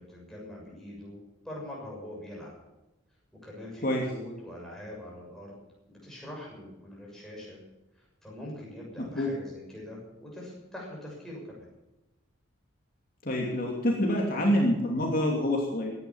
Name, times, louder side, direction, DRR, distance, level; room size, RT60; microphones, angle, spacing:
voice 1, 0.0-2.5 3.4-5.5 5.9-7.6 8.2-11.7, left 1 dB, ahead, -4 dB, 6.6 m, -43 dB
voice 2, 13.2-15.9, left 1 dB, 45° left, -1 dB, 2.9 m, -26 dB
16.5 x 11.0 x 7.3 m, 0.98 s
head